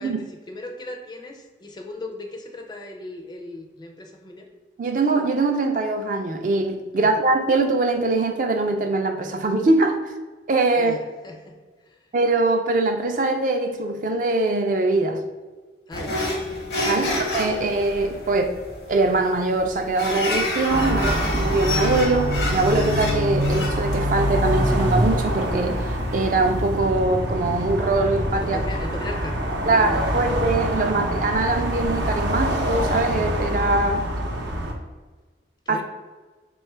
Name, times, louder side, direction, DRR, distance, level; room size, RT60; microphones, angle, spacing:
voice 1, 0.0-4.5 6.9-7.2 10.7-11.6 11.8-12.1 15.9-16.2 16.9-17.2 28.4-30.4 30.7-30.8 35.7-35.8, left 2 dB, 25° left, 3 dB, 0.4 m, -37 dB
voice 2, 4.8-10.0 10.5-10.9 12.1-15.2 16.8-18.5 18.9-25.8 26.1-28.6 29.7-34.0 35.7-35.8, right 3 dB, 45° right, 4 dB, 0.4 m, -22 dB
sound 1, 15.9-26.8, left 1 dB, 85° left, 0.9 m, -30 dB
sound 2, 20.7-34.7, equal, 90° right, 0.7 m, -25 dB
3.2 x 2.3 x 4.2 m, 1.3 s
head